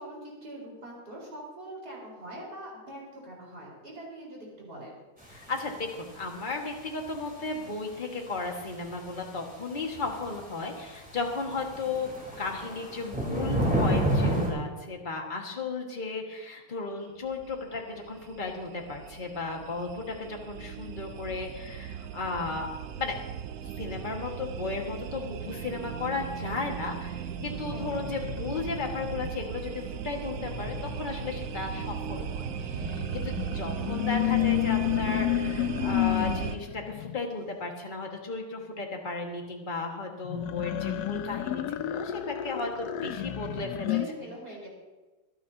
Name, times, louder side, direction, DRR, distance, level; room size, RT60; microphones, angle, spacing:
voice 1, 0.0-4.9 27.7-28.0 43.9-44.7, right 1 dB, 50° right, -3 dB, 4.9 m, -43 dB
sound 1, 5.2-5.3 5.8-5.9 6.2-6.3 6.5-6.7 7.1-7.2 8.4-8.5 8.6-8.7 8.9-9.1 9.5-9.6 9.8-10.4 10.8-14.5, right 1 dB, 5° right, 3.5 m, -28 dB
voice 2, 5.3-12.1 12.4-22.7 23.0-23.2 23.8-44.3, left 3 dB, 25° left, 1 dB, 1.6 m, -35 dB
sound 2, 17.2-36.6, right 9 dB, 65° right, 0.9 m, -37 dB
sound 3, 27.4-29.3 30.3-37.2 40.2-44.1, left 15 dB, 70° left, 0.9 m, -31 dB
25.5 x 10.0 x 2.8 m, 1.2 s
omnidirectional pair, 2.2 m